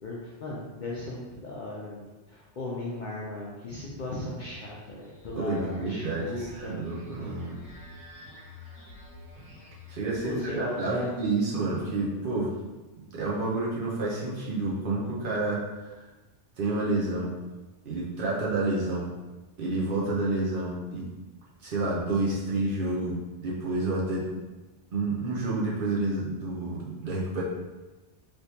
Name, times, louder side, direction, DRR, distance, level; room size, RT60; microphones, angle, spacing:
voice 1, 0.0-6.8 10.2-11.1, left 2 dB, 55° left, -5 dB, 0.5 m, -37 dB
sound 1, 4.9-11.5, left 3 dB, 5° right, 1.4 m, -49 dB
voice 2, 5.4-7.6 9.9-12.5 13.0-16.0 16.6-17.3 17.9-19.1 19.6-21.1 21.6-24.3 24.9-27.4, right 2 dB, 55° right, -5 dB, 0.7 m, -29 dB
3.3 x 2.9 x 2.8 m, 1.2 s
omnidirectional pair, 1.3 m